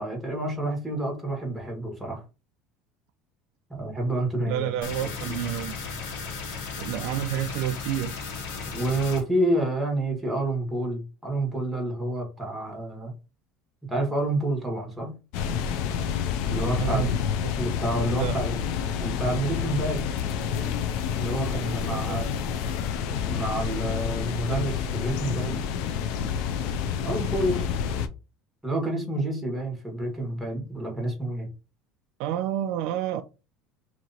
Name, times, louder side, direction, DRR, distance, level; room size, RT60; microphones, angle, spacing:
voice 1, 0.0-2.2 3.7-5.3 8.7-13.1 13.9-15.1 16.5-17.2 17.6-18.6 19.0-20.0 21.2-22.3 23.0-25.6 27.0-27.6 28.6-31.5, right 1 dB, 5° right, 1.4 m, -29 dB
voice 2, 4.5-5.8 6.8-8.2 16.8-17.5 18.1-18.4 21.9-22.2 32.2-33.2, right 11 dB, 65° right, 0.3 m, -29 dB
sound 1, 4.8-9.2, left 4 dB, 90° left, 1.3 m, -35 dB
sound 2, 15.3-28.1, left 7 dB, 70° left, 0.5 m, -28 dB
3.1 x 2.8 x 4.0 m
cardioid pair, 155°, 0 cm